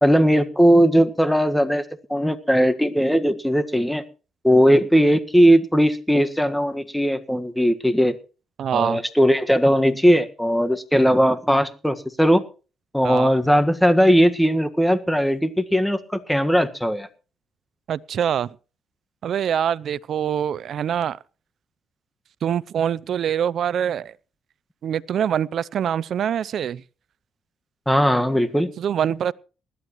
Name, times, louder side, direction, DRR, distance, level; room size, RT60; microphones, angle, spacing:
voice 1, 0.0-1.8 2.1-4.0 4.4-8.1 8.7-12.4 12.9-17.1 27.9-28.7, equal, ahead, 1.6 m, -18 dB
voice 2, 8.6-9.0 13.0-13.3 17.9-18.5 19.2-21.2 22.4-24.1 24.8-26.8 28.8-29.3, right 9 dB, 65° right, 0.5 m, -24 dB
20.0 x 12.5 x 3.1 m
cardioid pair, 90°, 0 cm